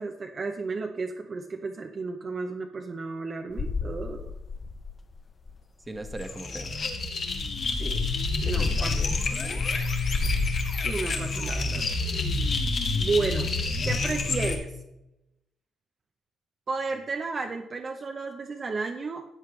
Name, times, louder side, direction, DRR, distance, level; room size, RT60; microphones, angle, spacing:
voice 1, 0.0-4.3 7.8-8.9 10.8-11.8 12.9-13.5 13.8-14.7 16.7-19.3, right 4 dB, 40° right, 3 dB, 0.8 m, -32 dB
sound 1, 3.5-5.2 5.5-5.6 5.8-6.3 6.8-9.9, left 5 dB, 35° left, 0.6 m, -33 dB
voice 2, 5.9-6.7 8.4-9.8, right 2 dB, 15° right, 6 dB, 1.3 m, -41 dB
sound 2, 6.2-14.6, left 3 dB, 55° left, 1.8 m, -28 dB
14.0 x 8.1 x 3.2 m, 0.91 s
cardioid pair, 90°, 0 cm